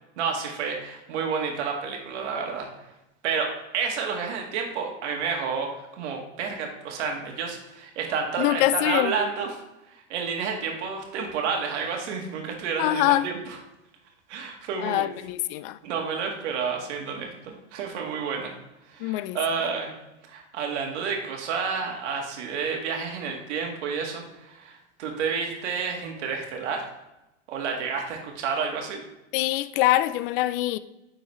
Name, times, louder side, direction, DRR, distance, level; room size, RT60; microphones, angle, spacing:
voice 1, 0.2-2.7 3.2-9.5 9.9-13.6 14.3-15.1 15.8-18.5 18.9-20.0 20.3-26.9 27.5-29.0, right 5 dB, 70° right, 1.8 m, -30 dB
voice 2, 8.4-9.2 12.8-13.3 14.8-15.8 19.0-19.4 29.3-30.8, left 15 dB, 50° left, 0.4 m, -24 dB
10.0 x 3.9 x 3.1 m
hypercardioid pair, 125°, 36 cm